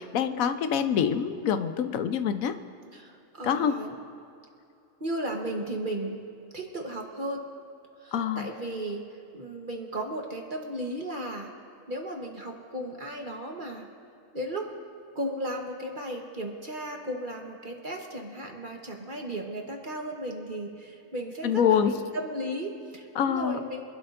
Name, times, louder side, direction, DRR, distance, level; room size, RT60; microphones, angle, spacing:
voice 1, 0.0-2.5 3.4-3.8 8.1-8.5 21.4-21.9 23.2-23.6, left 8 dB, 85° left, 10 dB, 1.1 m, -25 dB
voice 2, 2.9-4.0 5.0-6.2 6.5-7.5 8.0-9.0 9.3-11.5 11.9-13.9 14.3-14.7 15.1-23.8, right 1 dB, 40° right, 1 dB, 1.2 m, -35 dB
25.5 x 12.0 x 2.6 m, 2.7 s
omnidirectional pair, 1.4 m